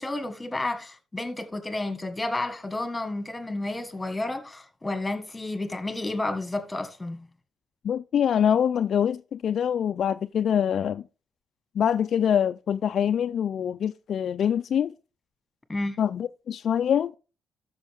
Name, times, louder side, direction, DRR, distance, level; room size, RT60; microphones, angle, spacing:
voice 1, 0.0-7.3 15.7-16.0, left 2 dB, 15° left, 1.6 m, -31 dB
voice 2, 7.8-11.0 11.8-14.9 16.0-17.1, left 8 dB, 60° left, 0.3 m, -24 dB
13.0 x 6.2 x 3.5 m
cardioid pair, 90°, 0 cm